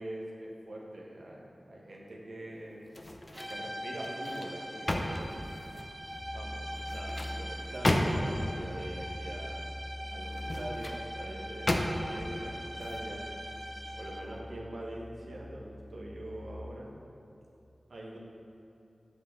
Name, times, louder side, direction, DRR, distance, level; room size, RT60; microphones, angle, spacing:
voice 1, 0.0-2.9 3.5-5.3 6.3-9.7 10.1-13.3 14.0-16.9 17.9-18.2, right 1 dB, 85° right, -3 dB, 1.2 m, -43 dB
sound 1, 2.9-3.6 4.0-6.0 6.7-8.5 10.2-11.0 11.7-12.3 12.7-13.0, left 1 dB, 40° left, 0.7 m, -33 dB
sound 2, 3.3-14.4, equal, 30° right, 0.9 m, -42 dB
Musical instrument, 6.1-16.9, left 1 dB, 10° right, 1.8 m, -44 dB
8.3 x 6.2 x 3.8 m, 2.9 s
cardioid pair, 45°, 0 cm